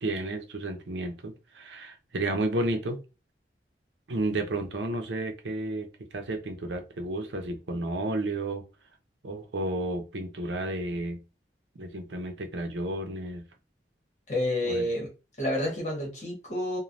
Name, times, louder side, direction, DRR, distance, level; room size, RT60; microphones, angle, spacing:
voice 1, 0.0-3.0 4.1-8.6 9.2-11.2 11.8-13.4 14.6-14.8, right 2 dB, 85° right, 5 dB, 0.6 m, -32 dB
voice 2, 14.3-15.1 15.4-16.8, left 1 dB, 40° left, -2 dB, 1.2 m, -29 dB
3.1 x 2.2 x 2.6 m, 0.30 s
head